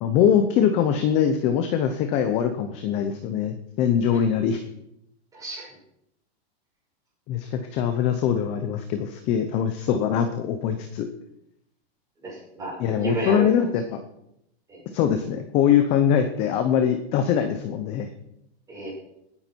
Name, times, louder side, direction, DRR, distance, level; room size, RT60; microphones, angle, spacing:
voice 1, 0.0-4.6 7.3-11.1 12.8-13.8 14.9-18.1, left 8 dB, 20° left, 8 dB, 0.7 m, -22 dB
voice 2, 5.3-5.7 12.2-13.7 14.7-14.8 18.7-18.9, right 2 dB, 10° right, -5 dB, 6.4 m, -32 dB
18.5 x 9.8 x 4.5 m, 0.79 s
supercardioid pair, 170°, 31 cm